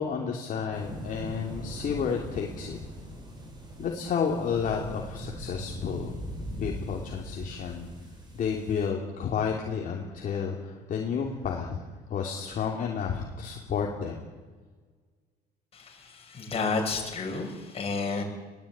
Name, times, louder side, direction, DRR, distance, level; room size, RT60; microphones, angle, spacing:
voice 1, 0.0-2.8 3.8-6.1 6.6-7.9 8.3-11.8 12.1-14.2, left 6 dB, 50° left, 0 dB, 3.1 m, -31 dB
sound 1, 0.7-8.9, equal, 25° right, 6.8 m, -40 dB
voice 2, 15.7-18.2, left 4 dB, 35° left, 1 dB, 6.7 m, -31 dB
22.0 x 18.0 x 9.0 m, 1.4 s
cardioid pair, 125°, 18 cm